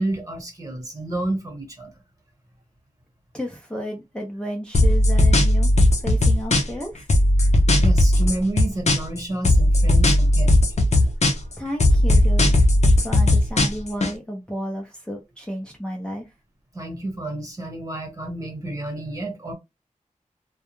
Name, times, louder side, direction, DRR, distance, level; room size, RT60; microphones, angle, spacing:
voice 1, 0.0-1.9 7.8-10.6 16.7-19.5, right 1 dB, 25° right, 1.2 m, -30 dB
voice 2, 3.3-5.7 6.0-7.1 11.6-12.5 13.0-16.3, equal, 5° left, 0.6 m, -32 dB
sound 1, 4.7-6.8 7.1-9.2 9.4-11.5 11.8-14.1, left 1 dB, 55° left, 0.6 m, -17 dB
2.3 x 2.2 x 2.9 m
wide cardioid pair, 100°, 14 cm